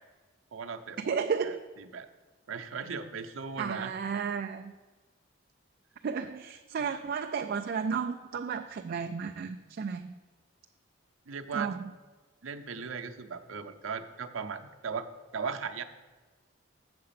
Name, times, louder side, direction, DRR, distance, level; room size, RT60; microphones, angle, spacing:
voice 1, 0.5-1.2 1.4-2.1 2.5-3.9 6.8-7.0 11.3-11.7 12.4-15.1 15.3-15.8, right 5 dB, 90° right, 7 dB, 0.7 m, -38 dB
voice 2, 1.1-1.6 3.6-4.7 6.0-10.2 11.5-11.9, right 6 dB, 50° right, 6 dB, 0.3 m, -33 dB
7.6 x 6.6 x 5.7 m, 1.3 s
head